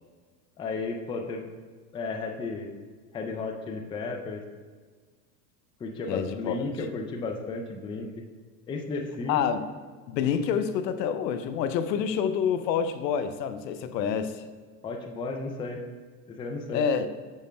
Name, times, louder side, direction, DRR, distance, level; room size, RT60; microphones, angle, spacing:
voice 1, 0.6-1.5 1.9-2.8 3.1-4.4 5.8-8.2 8.7-9.4 14.8-15.8 16.3-16.8, left 3 dB, 10° left, 3 dB, 0.3 m, -34 dB
voice 2, 6.1-6.6 9.3-9.6 10.1-14.4 16.7-17.1, left 7 dB, 85° left, 10 dB, 0.6 m, -27 dB
7.4 x 6.2 x 2.2 m, 1.5 s
hypercardioid pair, 95°, 49 cm